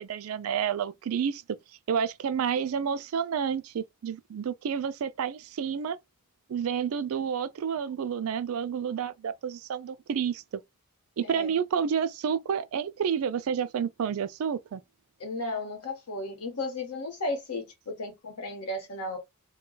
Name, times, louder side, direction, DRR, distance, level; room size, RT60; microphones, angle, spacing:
voice 1, 0.0-1.4 1.9-6.0 6.5-10.6 11.2-14.8, right 7 dB, 65° right, 0.3 m, -30 dB
voice 2, 15.2-19.2, left 2 dB, 90° left, 1.1 m, -34 dB
2.3 x 2.2 x 3.8 m
head